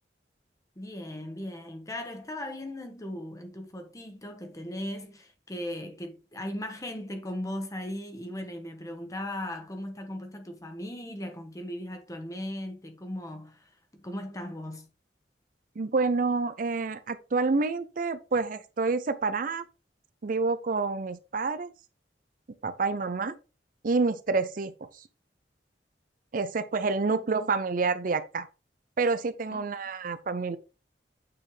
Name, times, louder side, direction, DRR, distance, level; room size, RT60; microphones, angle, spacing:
voice 1, 0.7-14.9 27.1-27.3 29.5-29.7, left 1 dB, 20° left, 1.3 m, -38 dB
voice 2, 15.8-19.7 20.2-21.7 22.6-23.3 23.8-25.0 26.3-28.5 29.0-30.6, right 4 dB, 50° right, 0.5 m, -28 dB
8.8 x 4.3 x 3.3 m
head